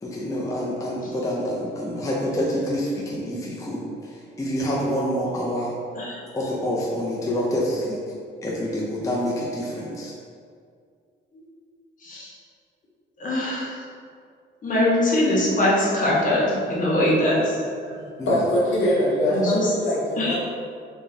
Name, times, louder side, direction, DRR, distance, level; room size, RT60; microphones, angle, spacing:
voice 1, 0.0-5.7 6.3-8.0 8.4-10.1 18.2-18.5 19.5-19.6, equal, 15° left, -4 dB, 0.6 m, -27 dB
voice 2, 12.0-12.3 13.2-13.8 14.6-17.6 19.3-19.7 20.1-20.4, left 1 dB, 40° left, -6 dB, 1.2 m, -22 dB
voice 3, 18.3-20.4, left 1 dB, 70° left, -5 dB, 0.9 m, -22 dB
3.5 x 3.2 x 2.8 m, 2.2 s
cardioid pair, 90°, 20 cm